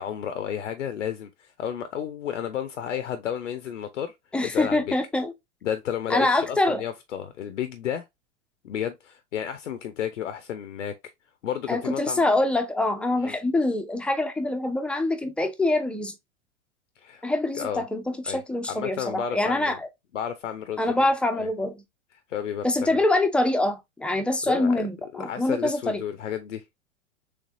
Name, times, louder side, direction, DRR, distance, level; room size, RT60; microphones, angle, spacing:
voice 1, 0.0-4.1 4.4-4.9 5.6-8.0 8.6-10.9 11.4-12.2 13.2-13.4 17.0-17.3 17.5-17.8 18.2-18.4 18.7-19.8 20.1-21.1 21.4-21.5 22.3-23.0 24.5-24.9 25.1-26.6, left 9 dB, 90° left, 0.5 m, -32 dB
voice 2, 4.3-5.3 6.1-6.8 11.7-16.1 17.2-19.8 20.8-21.8 22.6-26.0, left 2 dB, 5° left, 0.4 m, -25 dB
3.3 x 3.3 x 2.5 m
hypercardioid pair, 100°, 36 cm